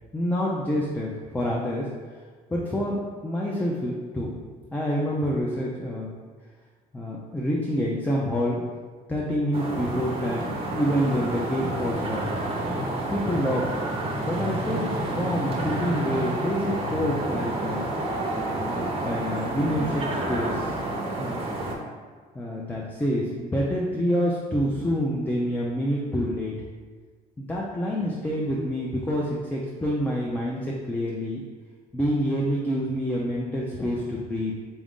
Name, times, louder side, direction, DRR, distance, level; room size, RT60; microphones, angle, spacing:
voice 1, 0.1-1.9 2.5-4.3 4.7-6.1 6.9-8.6 9.1-12.2 13.1-13.7 14.2-17.8 18.6-20.9 21.2-21.4 22.3-26.5 27.4-31.4 31.9-34.5, equal, 10° left, -3 dB, 0.4 m, -27 dB
sound 1, 9.5-21.7, right 1 dB, 35° right, 0.7 m, -29 dB
4.0 x 2.4 x 3.6 m, 1.5 s
cardioid pair, 110°, 17 cm